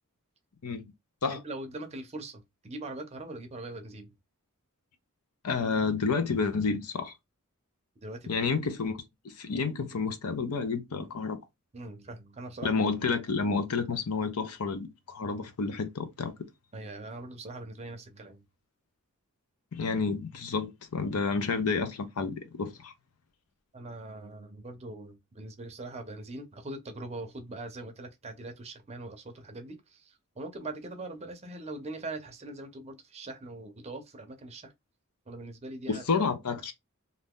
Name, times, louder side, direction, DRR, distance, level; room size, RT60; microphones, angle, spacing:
voice 1, 1.3-4.1 8.0-8.4 11.7-12.8 16.7-18.5 23.7-34.7 35.3-36.0, right 2 dB, 30° right, 0.6 m, -42 dB
voice 2, 5.4-7.1 8.3-9.0 9.2-11.4 12.6-16.3 19.7-22.9 35.9-36.7, left 4 dB, 80° left, 0.6 m, -30 dB
2.6 x 2.3 x 3.5 m
head